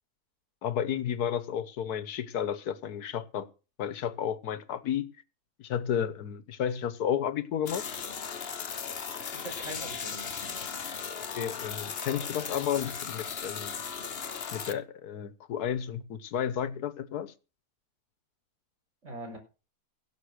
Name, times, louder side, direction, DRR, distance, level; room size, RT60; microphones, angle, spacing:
voice 1, 0.6-3.5 3.8-5.1 5.6-7.8 11.3-13.8 14.5-17.3, left 9 dB, 75° left, 1.5 m, -32 dB
sound 1, 7.7-14.7, left 6 dB, 45° left, 1.1 m, -37 dB
voice 2, 9.3-10.6 19.0-19.4, right 1 dB, 45° right, 6.4 m, -42 dB
16.5 x 7.5 x 6.4 m
omnidirectional pair, 1.7 m